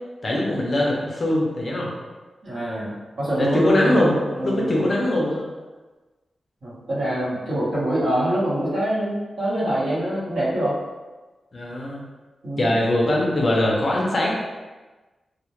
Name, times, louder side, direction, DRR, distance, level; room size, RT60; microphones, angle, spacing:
voice 1, 0.2-1.9 3.4-5.4 11.5-12.0 12.6-14.3, left 1 dB, 35° left, -3 dB, 0.4 m, -22 dB
voice 2, 2.4-4.9 6.6-10.7 12.4-12.7, right 1 dB, 65° right, -10 dB, 1.0 m, -25 dB
2.1 x 2.0 x 2.8 m, 1.2 s
wide cardioid pair, 180°, 0 cm